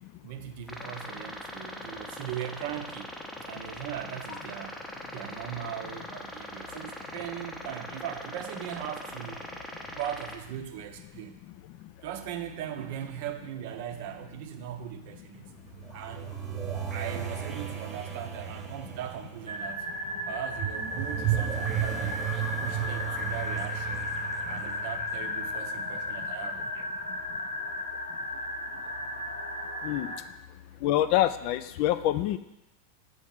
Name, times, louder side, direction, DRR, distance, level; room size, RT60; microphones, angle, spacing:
voice 1, 0.2-3.1 3.4-4.8 5.1-9.5 9.9-11.4 12.0-15.4 15.9-16.4 16.9-19.9 20.3-22.2 22.6-24.1 24.5-26.9, right 10 dB, 50° right, 7 dB, 0.6 m, -39 dB
sound 1, 0.7-10.4, left 1 dB, 10° left, 0.7 m, -41 dB
sound 2, 15.3-26.1, right 10 dB, 20° right, 1.0 m, -35 dB
sound 3, 19.5-30.2, left 2 dB, 80° left, 0.8 m, -35 dB
voice 2, 30.8-32.4, left 13 dB, 45° left, 12 dB, 0.3 m, -26 dB
7.1 x 3.3 x 5.8 m, 0.92 s
figure-of-eight pair, 90°, 0 cm